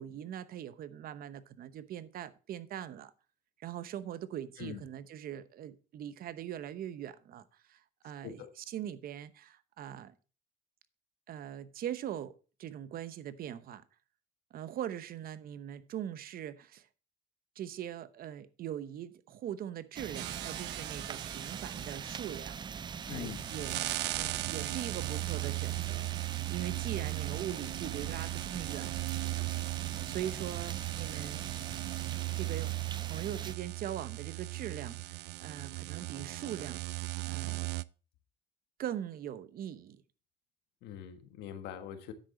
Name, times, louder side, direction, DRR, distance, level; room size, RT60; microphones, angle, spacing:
voice 1, 0.0-3.1 3.6-10.1 11.3-13.8 14.5-16.9 17.6-22.6 23.1-26.1 26.5-29.0 30.0-31.6 32.4-37.7 38.8-40.0, right 10 dB, 60° right, 0.9 m, -41 dB
sound 1, 19.9-33.5, right 7 dB, 25° right, 0.4 m, -43 dB
sound 2, 20.1-37.8, right 23 dB, 85° right, 0.4 m, -38 dB
voice 2, 23.1-23.5 40.8-42.1, left 9 dB, 85° left, 1.6 m, -43 dB
9.9 x 7.9 x 3.8 m
cardioid pair, 110°, 17 cm